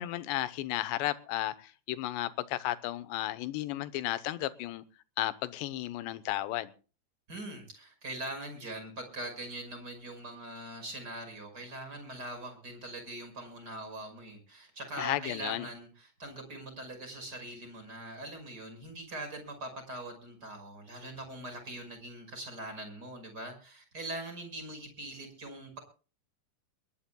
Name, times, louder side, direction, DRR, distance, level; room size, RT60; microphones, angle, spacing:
voice 1, 0.0-4.8 5.2-6.7 15.0-15.7, left 15 dB, 75° left, 3.0 m, -34 dB
voice 2, 7.3-25.8, right 1 dB, 20° right, 5.8 m, -42 dB
22.0 x 18.5 x 2.3 m
omnidirectional pair, 5.3 m